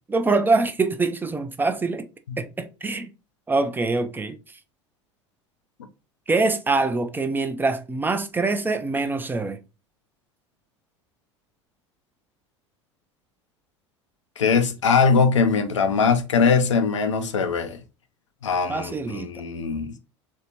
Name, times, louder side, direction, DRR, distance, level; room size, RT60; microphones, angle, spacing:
voice 1, 0.1-2.1 2.4-3.1 3.5-4.4 6.3-9.6 18.7-19.3, right 3 dB, 15° right, 0.4 m, -24 dB
voice 2, 14.4-17.8 18.4-19.9, left 5 dB, 80° left, 0.5 m, -21 dB
3.3 x 2.6 x 2.8 m
figure-of-eight pair, 75°, 15 cm